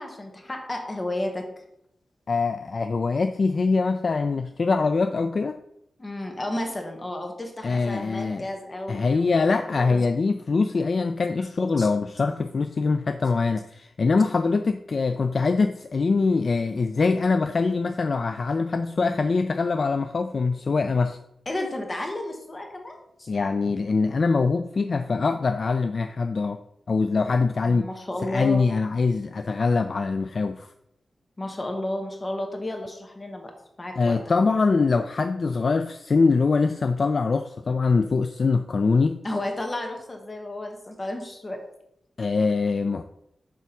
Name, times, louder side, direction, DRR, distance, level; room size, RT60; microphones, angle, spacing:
voice 1, 0.0-1.5 6.0-10.0 11.8-11.9 21.4-23.3 27.6-28.6 31.4-33.5 33.8-34.5 39.2-41.6, left 1 dB, 25° left, 2 dB, 1.5 m, -32 dB
voice 2, 2.3-5.6 7.6-8.5 8.9-21.2 23.3-26.6 26.9-27.9 28.2-30.7 34.0-39.2 42.2-43.0, left 4 dB, 50° left, 8 dB, 0.3 m, -23 dB
6.8 x 3.5 x 5.9 m, 0.78 s
wide cardioid pair, 110°, 0 cm